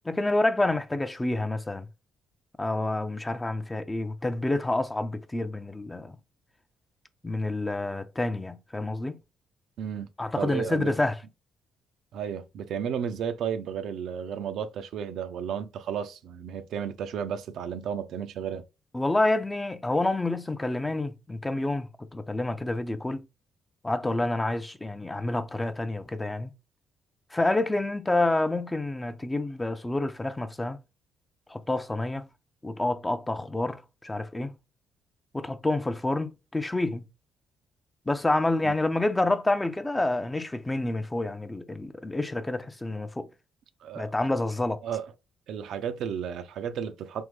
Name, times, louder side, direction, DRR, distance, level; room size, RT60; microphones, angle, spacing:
voice 1, 0.1-1.9 2.6-6.2 7.2-9.2 10.2-11.2 18.9-23.2 23.8-26.5 27.3-30.8 31.5-32.3 32.6-34.5 35.3-37.0 38.1-43.3 43.9-44.8, left 2 dB, 15° left, 0.4 m, -28 dB
voice 2, 9.8-10.1 10.4-10.9 12.1-18.7 38.6-38.7 43.8-44.1 44.8-45.1 45.5-47.2, right 8 dB, 75° right, 0.4 m, -33 dB
3.5 x 2.0 x 3.0 m
cardioid pair, 90°, 0 cm